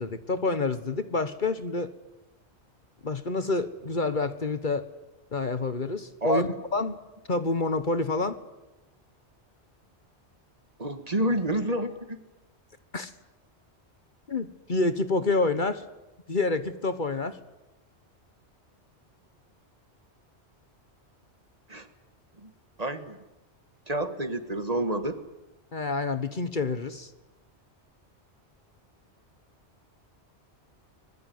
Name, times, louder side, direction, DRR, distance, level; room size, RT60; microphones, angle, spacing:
voice 1, 0.0-1.9 3.0-4.9 5.3-7.0 7.3-8.4 12.9-13.1 14.3-15.8 16.3-17.4 25.7-27.1, left 3 dB, 45° left, 11 dB, 1.3 m, -28 dB
voice 2, 6.2-6.5 10.8-12.2 21.7-21.9 22.4-22.5 22.8-23.2 23.9-25.2, right 1 dB, 35° right, 9 dB, 1.8 m, -29 dB
24.5 x 21.0 x 9.5 m, 0.99 s
omnidirectional pair, 1.1 m